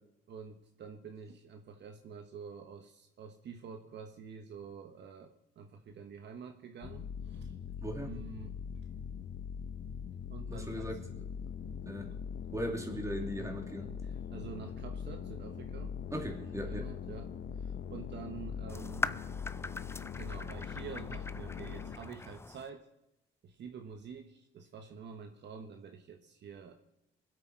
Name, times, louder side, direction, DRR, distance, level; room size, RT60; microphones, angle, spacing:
voice 1, 0.3-7.5 8.0-8.6 10.3-10.9 14.0-19.2 20.2-22.9 23.4-26.7, right 6 dB, 60° right, 5 dB, 1.3 m, -48 dB
sound 1, 6.8-22.0, left 7 dB, 55° left, 0.9 m, -42 dB
voice 2, 10.5-11.0 11.8-12.1 12.5-13.9 16.1-16.9, equal, 15° right, 2 dB, 2.8 m, -38 dB
sound 2, 18.7-22.7, left 3 dB, 15° left, 0.5 m, -41 dB
23.5 x 8.4 x 4.6 m, 0.84 s
cardioid pair, 90°, 20 cm